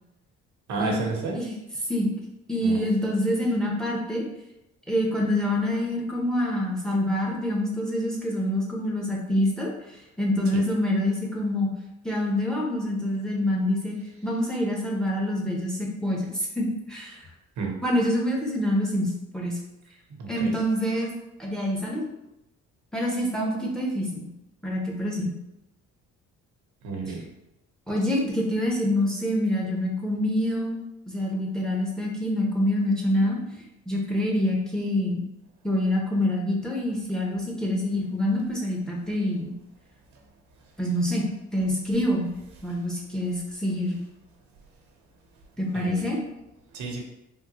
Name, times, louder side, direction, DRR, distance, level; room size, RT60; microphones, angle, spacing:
voice 1, 0.7-1.4 2.6-2.8 10.5-10.6 17.6-17.7 20.2-20.5 26.8-27.2 45.7-46.0 46.7-47.0, right 4 dB, 70° right, 0 dB, 0.9 m, -31 dB
voice 2, 2.5-4.2 4.9-9.7 10.2-11.7 12.0-14.0 14.2-17.2 17.8-19.6 20.3-21.1 21.4-22.0 22.9-24.3 24.6-25.3 27.9-30.8 31.1-33.4 33.9-35.3 35.6-39.5 40.8-41.2 41.5-42.3 42.6-44.0 45.6-46.2, left 1 dB, ahead, -2 dB, 0.7 m, -26 dB
3.7 x 2.2 x 2.9 m, 0.90 s
cardioid pair, 90°, 30 cm